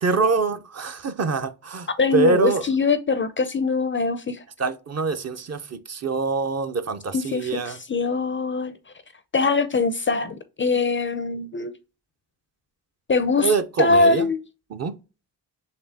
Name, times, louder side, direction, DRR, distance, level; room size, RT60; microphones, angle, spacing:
voice 1, 0.0-2.6 4.6-7.8 13.4-14.3 14.7-15.0, right 4 dB, 40° right, 0.6 m, -24 dB
voice 2, 2.0-4.4 7.1-8.7 9.3-11.7 13.1-13.5 13.8-14.4, left 4 dB, 30° left, 0.4 m, -22 dB
4.2 x 3.0 x 2.7 m
cardioid pair, 80°, 40 cm